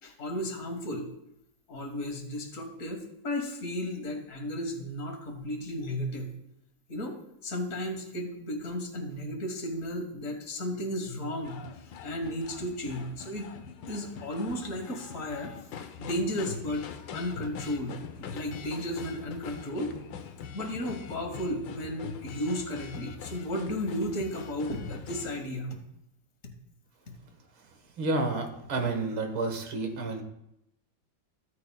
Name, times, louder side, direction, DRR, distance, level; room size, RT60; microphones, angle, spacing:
voice 1, 0.0-1.1 1.7-6.3 6.9-7.2 7.4-11.6 12.0-13.6 13.9-15.5 16.0-16.8 17.1-19.9 20.5-25.8, equal, 45° left, 4 dB, 1.8 m, -34 dB
sound 1, 11.4-25.3, left 7 dB, 75° left, 1.5 m, -43 dB
voice 2, 28.0-30.2, right 3 dB, 85° right, 5 dB, 2.2 m, -30 dB
15.0 x 9.5 x 2.3 m, 0.83 s
omnidirectional pair, 2.1 m